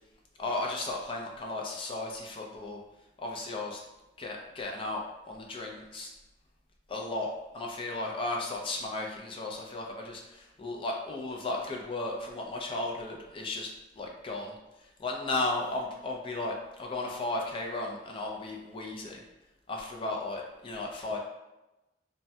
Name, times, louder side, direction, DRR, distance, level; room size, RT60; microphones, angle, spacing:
voice 1, 0.4-2.8 3.2-3.8 4.2-6.1 6.9-14.5 14.8-19.2 19.7-21.2, left 2 dB, 30° left, 0 dB, 0.4 m, -35 dB
3.1 x 2.2 x 2.7 m, 0.99 s
head